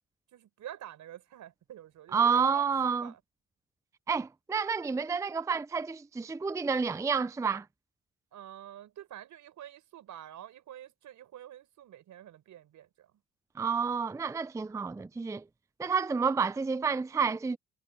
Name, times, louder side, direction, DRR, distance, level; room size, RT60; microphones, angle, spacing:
voice 1, 0.3-2.6 3.0-3.2 8.3-13.1, right 11 dB, 75° right, 5.2 m, -47 dB
voice 2, 2.1-3.1 4.1-7.6 13.6-15.4 15.8-17.6, right 5 dB, 10° right, 0.4 m, -29 dB
cardioid pair, 90°, 30 cm